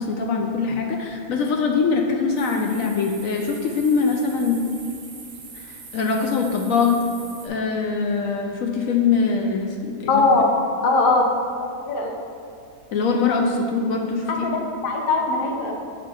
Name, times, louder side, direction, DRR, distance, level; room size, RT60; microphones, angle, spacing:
voice 1, 0.0-4.6 5.5-7.0 7.4-10.2 12.9-14.5, left 5 dB, 75° left, 2 dB, 1.0 m, -23 dB
sound 1, 2.4-7.5, right 4 dB, 50° right, 0.5 m, -42 dB
voice 2, 10.1-10.5 10.8-11.2 11.8-12.1 14.3-15.7, left 3 dB, 50° left, 1 dB, 0.8 m, -20 dB
6.4 x 4.0 x 4.7 m, 2.5 s
omnidirectional pair, 1.5 m